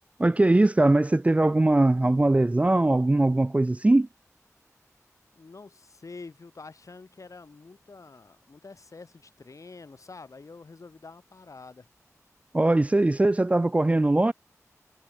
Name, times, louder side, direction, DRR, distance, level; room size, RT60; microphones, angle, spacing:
voice 1, 0.2-4.1 12.5-14.3, right 2 dB, 25° right, 0.4 m, -21 dB
voice 2, 5.3-11.9, left 4 dB, 70° left, 5.1 m, -47 dB
wide cardioid pair, 55°, 6 cm